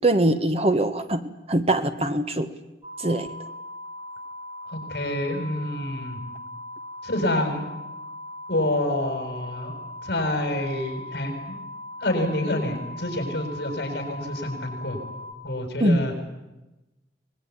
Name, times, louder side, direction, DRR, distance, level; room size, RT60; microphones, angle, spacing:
voice 1, 0.0-1.2 1.5-2.5 3.0-3.3 15.8-16.0, right 1 dB, 35° right, 9 dB, 1.4 m, -22 dB
sound 1, 2.8-15.3, left 1 dB, 15° right, 3.0 m, -39 dB
voice 2, 4.7-6.2 7.0-7.7 8.5-9.7 10.0-11.5 12.0-15.0 15.4-16.1, left 1 dB, 60° left, 4 dB, 7.5 m, -27 dB
25.0 x 21.0 x 9.9 m, 1.0 s
head